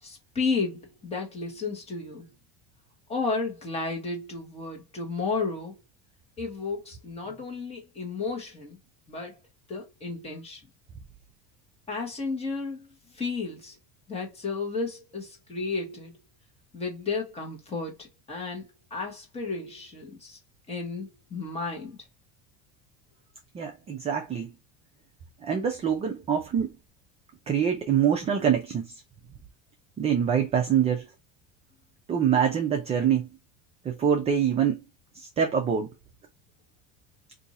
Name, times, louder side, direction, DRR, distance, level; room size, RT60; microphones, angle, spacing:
voice 1, 0.0-2.3 3.1-5.8 6.4-8.8 9.1-9.4 9.7-10.6 11.9-13.8 14.1-16.1 16.7-20.4 20.7-22.0, left 4 dB, 15° left, 1.2 m, -33 dB
voice 2, 23.5-24.5 25.4-26.7 27.5-29.0 30.0-31.1 32.1-33.3 33.8-34.8 35.1-35.9, right 8 dB, 20° right, 0.3 m, -25 dB
2.7 x 2.6 x 4.0 m
cardioid pair, 155°, 36 cm